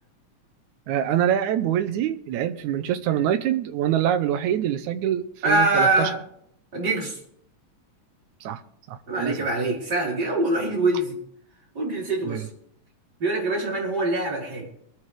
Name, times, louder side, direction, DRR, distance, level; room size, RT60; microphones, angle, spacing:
voice 1, 0.9-6.1 8.4-8.6 8.9-9.4 12.2-12.5, right 10 dB, 85° right, 8 dB, 2.2 m, -25 dB
voice 2, 5.4-6.2 6.7-7.2 9.1-11.2 11.7-12.5 13.2-14.6, right 2 dB, 35° right, -4 dB, 4.8 m, -24 dB
24.5 x 8.3 x 3.4 m, 0.70 s
omnidirectional pair, 3.4 m